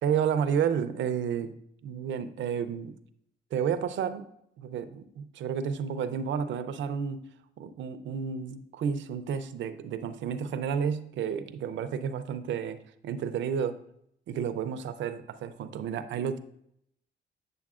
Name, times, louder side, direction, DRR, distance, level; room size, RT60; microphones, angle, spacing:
voice 1, 0.0-1.6 1.8-3.0 3.5-4.3 4.6-7.2 7.6-13.7 14.3-16.4, right 7 dB, 70° right, 12 dB, 0.6 m, -31 dB
8.5 x 6.8 x 2.4 m, 0.73 s
cardioid pair, 90°, 20 cm